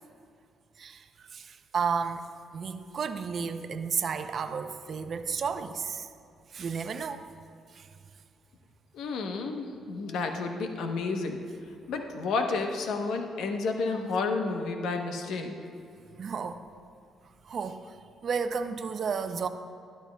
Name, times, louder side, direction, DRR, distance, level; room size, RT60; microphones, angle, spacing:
voice 1, 0.8-2.2 2.5-6.1 6.5-7.2 7.7-7.9 16.2-16.6 17.4-17.9 18.2-19.5, right 6 dB, 50° right, 9 dB, 0.5 m, -32 dB
voice 2, 8.9-11.4 11.9-15.5, left 4 dB, 80° left, 4 dB, 0.9 m, -31 dB
12.5 x 12.0 x 2.3 m, 2.5 s
cardioid pair, 90°, 0 cm